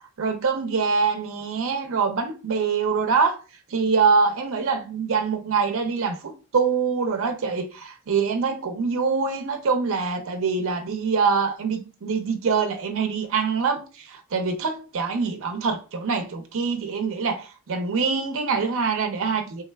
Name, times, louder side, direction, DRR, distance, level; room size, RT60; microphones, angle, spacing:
voice 1, 0.2-3.3 3.7-19.6, right 5 dB, 60° right, 0.5 m, -24 dB
3.4 x 3.1 x 2.2 m
head